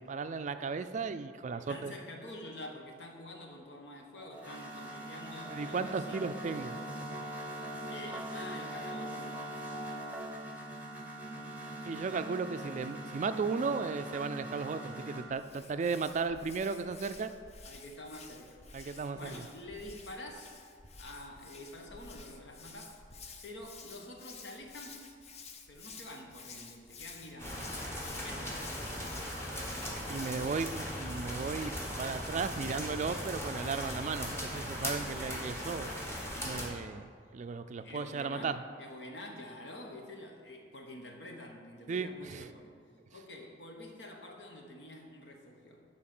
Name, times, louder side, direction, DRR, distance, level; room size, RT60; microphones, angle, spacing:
voice 1, 0.0-2.0 5.5-6.8 11.9-17.3 18.7-19.4 30.1-35.9 36.4-37.1 37.3-38.6 41.9-42.5, right 4 dB, 45° right, 10 dB, 0.3 m, -35 dB
voice 2, 1.5-6.2 7.9-9.4 17.6-18.6 19.1-20.6 21.0-23.0 23.4-25.0 25.7-27.7 28.2-28.6 37.8-42.7 43.1-45.8, left 1 dB, 75° left, 2 dB, 1.1 m, -47 dB
sound 1, 4.2-15.3, right 1 dB, 10° right, 0.9 m, -42 dB
Hands, 15.3-30.7, left 4 dB, 40° left, 0.7 m, -51 dB
sound 2, 27.4-36.7, equal, 15° left, 1.3 m, -38 dB
10.0 x 4.0 x 6.0 m, 2.1 s
head